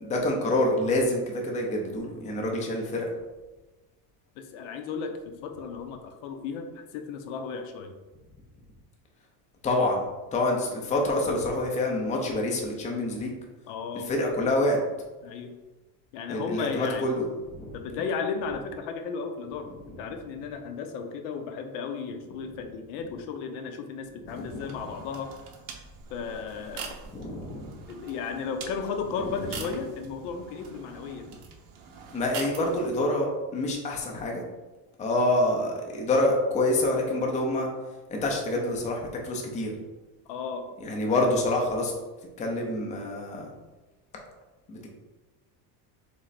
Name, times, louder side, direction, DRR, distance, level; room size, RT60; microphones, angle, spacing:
voice 1, 0.0-3.1 9.6-13.3 14.0-14.8 16.3-17.8 19.9-20.0 24.2-24.8 27.1-27.9 29.2-29.4 32.1-34.4 35.0-37.7 38.1-39.8 40.8-41.9 42.4-43.5 44.7-45.0, left 1 dB, 15° left, 0 dB, 0.5 m, -27 dB
voice 2, 4.4-7.9 13.7-14.1 15.2-15.6 16.1-17.1 17.7-25.4 26.1-27.0 27.9-31.4 40.3-40.7, left 5 dB, 65° left, 6 dB, 0.7 m, -34 dB
sound 1, 24.3-33.0, right 5 dB, 45° right, 0.7 m, -44 dB
3.7 x 3.2 x 4.0 m, 1.2 s
cardioid pair, 150°, 47 cm